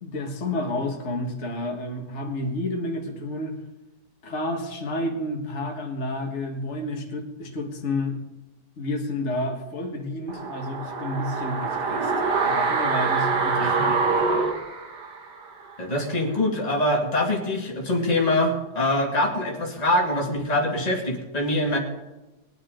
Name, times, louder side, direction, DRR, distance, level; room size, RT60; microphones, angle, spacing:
voice 1, 0.0-3.6 4.2-8.2 8.8-12.1 12.4-14.2, left 1 dB, 45° left, 1 dB, 1.9 m, -30 dB
sound 1, 10.3-15.4 15.7-15.8, right 4 dB, 90° right, 2.1 m, -25 dB
voice 2, 13.6-14.0 15.8-21.8, left 1 dB, 25° left, 0 dB, 2.2 m, -24 dB
21.0 x 9.9 x 3.8 m, 1.0 s
omnidirectional pair, 1.8 m